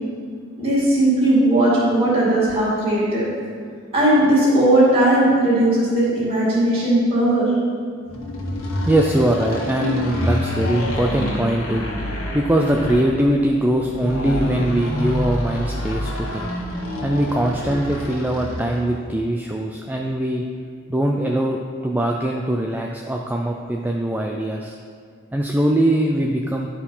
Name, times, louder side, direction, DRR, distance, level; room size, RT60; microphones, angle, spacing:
voice 1, 0.6-3.2 3.9-7.5, right 1 dB, 25° right, -10 dB, 2.4 m, -17 dB
sound 1, 8.1-18.9, left 1 dB, 75° left, 1.7 m, -27 dB
voice 2, 8.8-16.5 17.0-20.4 20.9-24.8 25.3-26.7, right 1 dB, 10° right, 1 dB, 0.3 m, -22 dB
11.0 x 4.5 x 5.5 m, 2.1 s
head